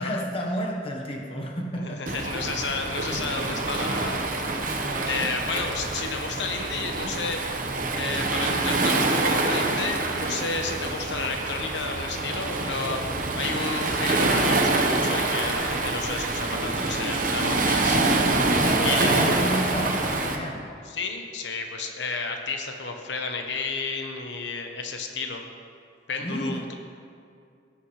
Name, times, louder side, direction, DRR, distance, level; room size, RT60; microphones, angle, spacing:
voice 1, 0.0-2.2 4.7-5.3 18.6-20.7 26.2-26.7, equal, 30° left, 0 dB, 1.1 m, -31 dB
voice 2, 1.8-4.8 5.1-7.4 8.0-13.1 13.3-18.0 18.8-19.4 20.9-25.5 26.1-26.7, left 4 dB, 80° left, 4 dB, 1.0 m, -32 dB
Waves surf, 2.1-20.4, right 2 dB, 50° right, 1.0 m, -26 dB
17.5 x 9.3 x 3.2 m, 2.4 s
head